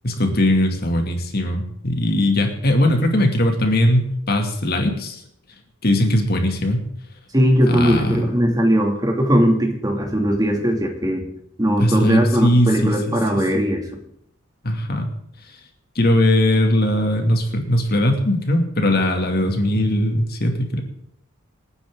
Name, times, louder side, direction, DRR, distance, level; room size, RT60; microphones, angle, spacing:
voice 1, 0.0-5.2 5.8-6.8 7.7-8.2 11.8-13.2 14.6-15.1 16.0-20.8, left 1 dB, 50° left, 3 dB, 2.6 m, -19 dB
voice 2, 7.3-11.2 11.6-13.8, equal, 20° right, 2 dB, 2.6 m, -19 dB
26.5 x 9.9 x 3.9 m, 0.72 s
head